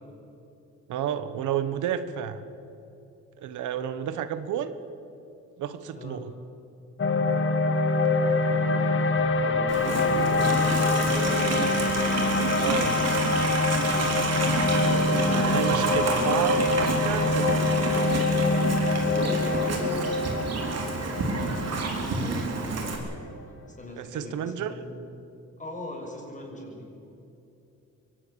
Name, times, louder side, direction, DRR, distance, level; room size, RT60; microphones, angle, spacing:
voice 1, 0.9-2.4 3.4-4.7 5.6-6.3 12.6-13.0 15.3-17.5 24.0-24.8, right 9 dB, 80° right, 12 dB, 1.4 m, -31 dB
voice 2, 5.9-6.3 8.5-9.0 9.4-11.4 15.6-16.3 19.0-21.3 22.1-22.9 23.8-25.0 25.6-26.9, left 1 dB, 25° left, 0 dB, 6.7 m, -40 dB
sound 1, 7.0-23.3, left 3 dB, 45° left, 1.8 m, -25 dB
Livestock farm animals working animals, 9.7-23.0, right 4 dB, 55° right, 4.1 m, -29 dB
24.0 x 18.5 x 7.1 m, 2.8 s
cardioid pair, 90°, 30 cm